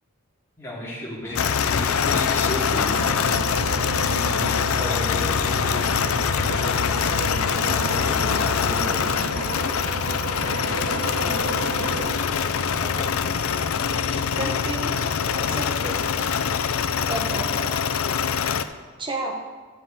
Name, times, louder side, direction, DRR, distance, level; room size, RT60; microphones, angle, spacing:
voice 1, 0.6-2.9 4.7-13.2 15.5-15.8 17.0-17.9, left 1 dB, 15° left, -7 dB, 2.8 m, -36 dB
sound 1, 1.3-18.7, left 7 dB, 80° left, 0.5 m, -24 dB
sound 2, 2.9-12.1, right 4 dB, 50° right, 0.5 m, -33 dB
voice 2, 4.6-5.1 14.3-15.0 15.3-16.0 17.1-17.5 19.0-19.3, right 2 dB, 20° right, 1 dB, 1.2 m, -32 dB
sound 3, 7.7-17.0, right 2 dB, 75° right, 1.6 m, -49 dB
11.5 x 7.7 x 4.0 m, 1.4 s
head